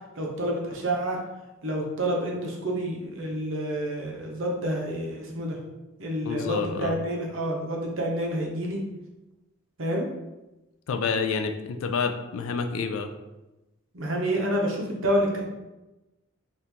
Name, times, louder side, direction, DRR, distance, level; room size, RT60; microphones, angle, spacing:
voice 1, 0.2-1.2 1.6-5.6 6.0-8.8 9.8-10.1 13.9-15.4, right 1 dB, 65° right, -1 dB, 0.7 m, -28 dB
voice 2, 6.2-6.9 10.9-13.1, left 5 dB, 75° left, 7 dB, 0.3 m, -28 dB
2.9 x 2.5 x 3.5 m, 1.0 s
head